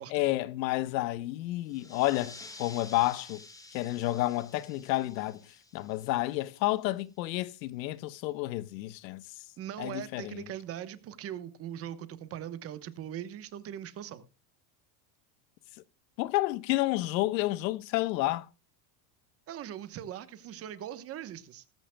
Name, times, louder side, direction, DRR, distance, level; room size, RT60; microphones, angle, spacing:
voice 1, 0.1-3.4 3.7-5.5 5.7-9.2 9.8-10.4 16.2-18.5, left 17 dB, 85° left, 1.1 m, -30 dB
sound 1, 1.7-6.9, left 2 dB, 5° left, 1.4 m, -51 dB
voice 2, 9.6-14.2 19.5-21.6, right 10 dB, 30° right, 1.0 m, -40 dB
18.0 x 15.0 x 2.2 m
supercardioid pair, 165°, 50 cm